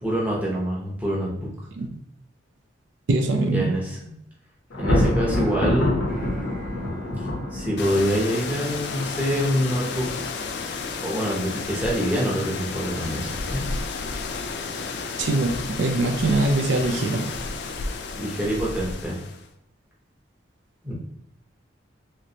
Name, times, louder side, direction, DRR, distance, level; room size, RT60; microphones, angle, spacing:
voice 1, 0.0-1.5 3.4-4.1 4.8-6.0 7.5-10.1 11.0-13.6 18.2-19.2 20.8-20.9, equal, 10° right, -5 dB, 0.7 m, -25 dB
voice 2, 3.1-3.7 15.2-17.5, right 2 dB, 75° right, 4 dB, 0.4 m, -23 dB
Thunder, 4.7-8.0, left 1 dB, 85° left, 0.7 m, -24 dB
sound 1, 5.3-11.0, left 1 dB, 45° right, 0.8 m, -43 dB
sound 2, 7.8-19.5, left 4 dB, 60° left, 0.3 m, -32 dB
3.1 x 3.1 x 2.7 m, 0.79 s
head